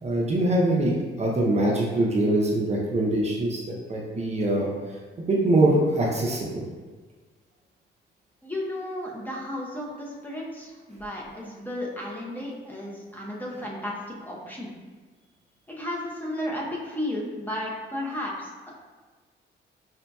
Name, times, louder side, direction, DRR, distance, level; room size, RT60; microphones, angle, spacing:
voice 1, 0.0-3.6 3.9-4.7 5.2-6.6, right 1 dB, 35° right, -3 dB, 0.6 m, -23 dB
voice 2, 8.4-14.7 15.7-18.7, left 1 dB, 10° left, -3 dB, 0.7 m, -33 dB
5.0 x 2.7 x 2.3 m, 1.4 s
cardioid pair, 90°, 20 cm